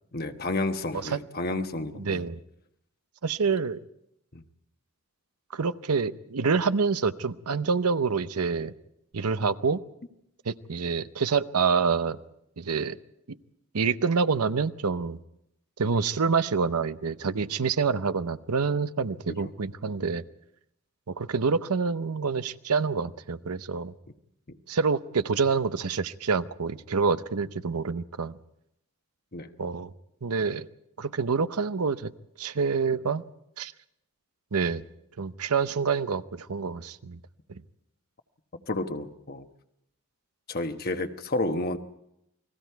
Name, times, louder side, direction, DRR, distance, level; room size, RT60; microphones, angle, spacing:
voice 1, 0.1-2.2 4.3-4.4 24.5-24.6 29.3-29.5 38.7-39.5 40.5-41.8, left 2 dB, 45° left, 1.1 m, -31 dB
voice 2, 2.0-2.4 3.2-3.8 5.5-8.7 9.1-9.8 10.4-12.2 12.6-13.0 13.3-13.4 13.7-15.2 15.8-20.2 21.1-23.9 24.7-28.4 29.6-29.9 30.2-30.7 31.0-32.1 32.4-33.2 33.6-33.7 34.5-34.8 35.2-37.2 37.5-37.6, right 5 dB, 90° right, 0.8 m, -27 dB
29.5 x 20.5 x 4.6 m
head